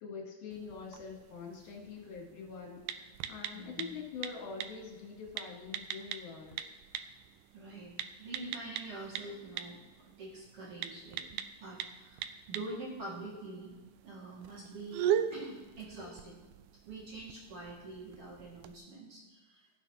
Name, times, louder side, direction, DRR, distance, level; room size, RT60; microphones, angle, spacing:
voice 1, 0.0-6.6, left 5 dB, 70° left, 0 dB, 2.8 m, -45 dB
sound 1, 0.5-18.8, right 9 dB, 80° right, 1.9 m, -41 dB
voice 2, 3.5-4.0 7.5-9.8 10.0-13.7 14.0-16.4 16.9-19.8, right 2 dB, 45° right, -5 dB, 2.7 m, -46 dB
16.5 x 6.3 x 2.8 m, 1.3 s
omnidirectional pair, 4.0 m